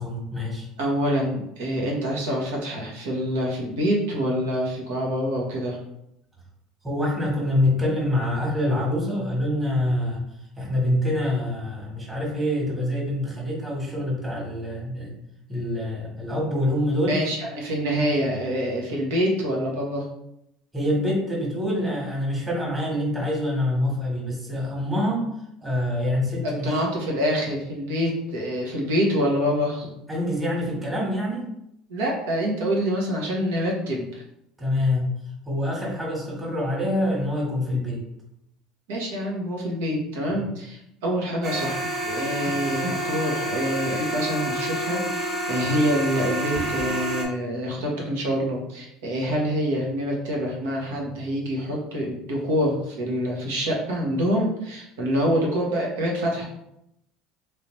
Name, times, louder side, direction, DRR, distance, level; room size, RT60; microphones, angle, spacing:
voice 1, 0.0-0.7 6.8-10.2 10.6-15.1 15.5-17.2 20.7-25.3 25.6-26.8 30.1-31.5 34.6-35.1 35.5-38.0, left 1 dB, 15° right, -3 dB, 1.4 m, -25 dB
voice 2, 0.8-5.8 17.1-20.1 26.4-29.9 31.9-34.2 38.9-56.5, equal, 85° right, -2 dB, 1.1 m, -26 dB
sound 1, 41.4-47.2, right 1 dB, 45° right, 1.2 m, -28 dB
3.2 x 2.8 x 3.1 m, 0.80 s
supercardioid pair, 105°, 0 cm